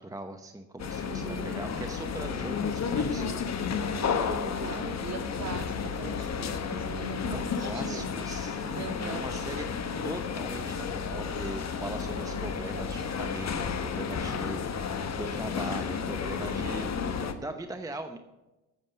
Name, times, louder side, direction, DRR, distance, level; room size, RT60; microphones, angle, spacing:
voice 1, 0.0-3.3 7.3-9.7 10.0-16.9 17.2-18.2, right 1 dB, 10° right, 6 dB, 0.8 m, -40 dB
sound 1, 0.8-17.3, left 6 dB, 40° left, 1.2 m, -32 dB
voice 2, 1.1-1.6 3.7-8.2 8.7-9.3, right 3 dB, 40° right, 1 dB, 3.1 m, -40 dB
8.9 x 7.2 x 8.0 m, 1.1 s
supercardioid pair, 75°, 42 cm